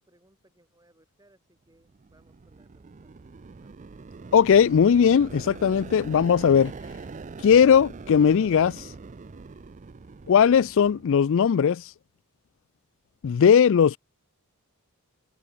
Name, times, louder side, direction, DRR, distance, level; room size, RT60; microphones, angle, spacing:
voice 1, 0.0-3.3 3.6-3.8, right 1 dB, 15° right, 5.3 m, -64 dB
sound 1, 1.8-11.6, right 4 dB, 35° right, 0.5 m, -43 dB
voice 2, 4.3-6.7 7.4-8.8 10.3-11.8 13.2-14.0, left 7 dB, 60° left, 0.4 m, -18 dB
head